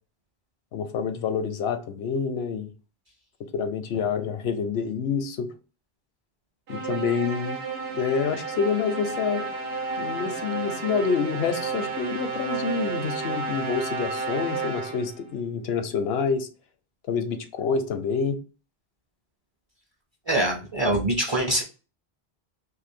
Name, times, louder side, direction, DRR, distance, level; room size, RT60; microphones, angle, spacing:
voice 1, 0.7-2.7 3.5-5.5 6.7-7.6 7.9-9.5 10.0-16.5 17.1-18.4, left 6 dB, 80° left, 0.8 m, -27 dB
sound 1, 6.7-15.2, right 4 dB, 75° right, 1.0 m, -32 dB
voice 2, 20.3-21.6, right 1 dB, 30° right, 0.6 m, -24 dB
2.7 x 2.6 x 4.2 m
omnidirectional pair, 1.0 m